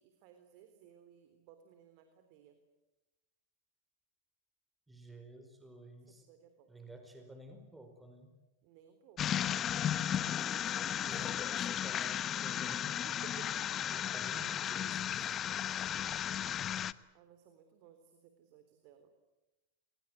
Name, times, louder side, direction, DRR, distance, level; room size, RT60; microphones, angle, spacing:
voice 1, 0.0-2.6 6.0-6.7 8.6-9.4 9.8-11.6 12.9-14.0 14.7-16.5 17.1-19.1, right 9 dB, 55° right, 7 dB, 3.6 m, -59 dB
voice 2, 4.9-6.3 6.7-8.4 10.8-13.1 13.9-15.1, right 1 dB, 10° right, 5 dB, 4.9 m, -52 dB
sound 1, 9.2-16.9, left 10 dB, 35° left, 1.0 m, -35 dB
27.5 x 21.0 x 9.5 m, 1.0 s
hypercardioid pair, 100°, 0 cm